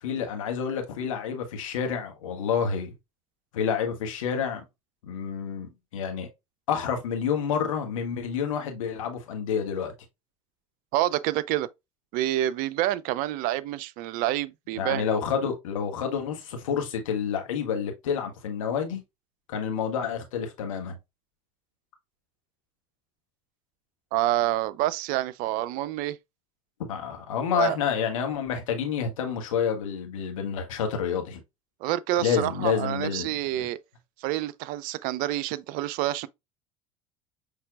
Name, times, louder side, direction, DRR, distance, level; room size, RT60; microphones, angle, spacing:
voice 1, 0.0-2.9 3.5-4.6 5.0-6.3 6.7-9.9 14.7-19.0 19.5-21.0 26.9-31.4 32.2-33.3 33.6-33.7, left 7 dB, 75° left, 1.3 m, -29 dB
voice 2, 10.9-11.7 12.1-15.0 24.1-26.2 27.5-27.8 31.8-33.8 34.2-36.3, right 14 dB, 55° right, 0.4 m, -27 dB
5.8 x 3.3 x 2.3 m
hypercardioid pair, 65°, 17 cm